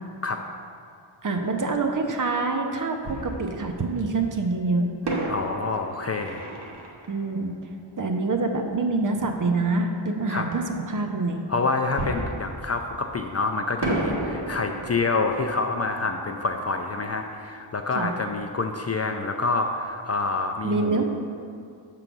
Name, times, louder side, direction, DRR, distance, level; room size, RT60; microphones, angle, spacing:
voice 1, 1.2-4.9 7.1-7.7 8.0-11.4 17.9-18.1 20.6-21.0, right 3 dB, 45° right, 4 dB, 0.7 m, -26 dB
Fireworks, 1.7-1.8 3.0-4.2 5.0-8.5 12.0-13.4 13.8-18.4 18.6-18.7 19.2-19.4, right 2 dB, 60° right, 1.2 m, -34 dB
voice 2, 5.3-6.5 10.3-10.4 11.5-21.0, left 3 dB, 35° left, 4 dB, 0.4 m, -27 dB
7.9 x 3.8 x 6.0 m, 2.4 s
wide cardioid pair, 115°, 46 cm